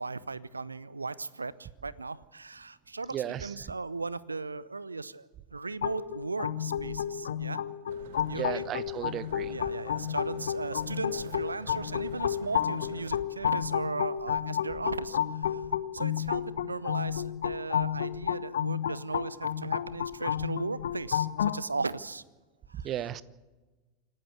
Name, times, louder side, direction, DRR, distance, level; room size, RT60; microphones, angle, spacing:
voice 1, 0.0-7.6 8.2-8.6 9.5-15.6 15.9-22.2 22.7-22.9, right 3 dB, 85° right, 20 dB, 0.7 m, -37 dB
voice 2, 3.1-3.5 8.3-9.5 22.8-23.2, right 11 dB, 35° right, 19 dB, 0.9 m, -34 dB
sound 1, 5.8-21.6, left 9 dB, 70° left, 1.0 m, -31 dB
sound 2, 7.9-13.2, right 6 dB, 65° right, 1.5 m, -48 dB
27.0 x 12.5 x 8.1 m, 1.2 s
figure-of-eight pair, 85°, 0 cm